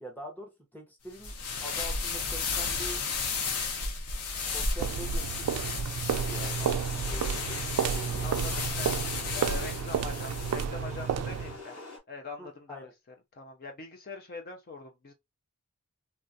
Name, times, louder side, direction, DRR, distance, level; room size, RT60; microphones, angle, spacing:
voice 1, 0.0-3.0 4.5-6.8 7.1-8.4 12.4-12.9, right 1 dB, 10° left, 0.8 m, -45 dB
sound 1, 1.1-10.6, left 4 dB, 90° left, 0.8 m, -33 dB
sound 2, 4.8-11.6, right 8 dB, 90° right, 0.3 m, -31 dB
sound 3, 6.1-12.0, left 3 dB, 65° left, 1.1 m, -45 dB
voice 2, 8.2-9.0 9.3-11.8 12.1-12.9 13.3-15.1, left 4 dB, 40° left, 0.4 m, -43 dB
3.2 x 2.4 x 2.5 m
head